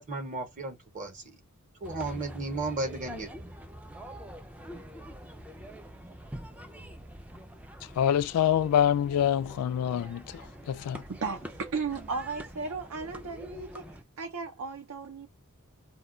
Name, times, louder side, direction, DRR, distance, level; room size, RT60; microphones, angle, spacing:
voice 1, 0.0-1.4 1.8-3.3, right 2 dB, 35° right, 0.8 m, -34 dB
sound 1, 1.8-14.0, equal, 5° right, 0.3 m, -45 dB
voice 2, 8.0-11.0, left 9 dB, 80° left, 0.3 m, -26 dB
voice 3, 11.1-15.3, right 4 dB, 70° right, 0.5 m, -35 dB
2.2 x 2.2 x 3.7 m
head